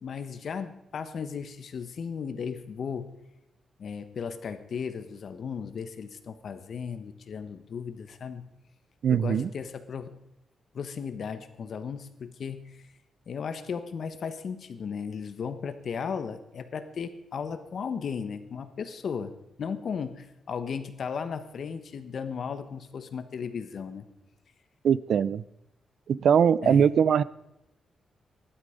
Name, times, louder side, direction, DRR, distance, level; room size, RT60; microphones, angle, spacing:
voice 1, 0.0-3.1 3.8-8.5 9.1-10.1 10.7-12.9 13.3-24.1 26.6-26.9, left 6 dB, 60° left, 11 dB, 1.3 m, -36 dB
voice 2, 9.0-9.5 24.8-25.4 26.1-27.2, right 7 dB, 70° right, 19 dB, 0.5 m, -21 dB
17.5 x 12.0 x 5.2 m, 0.87 s
cardioid pair, 100°, 0 cm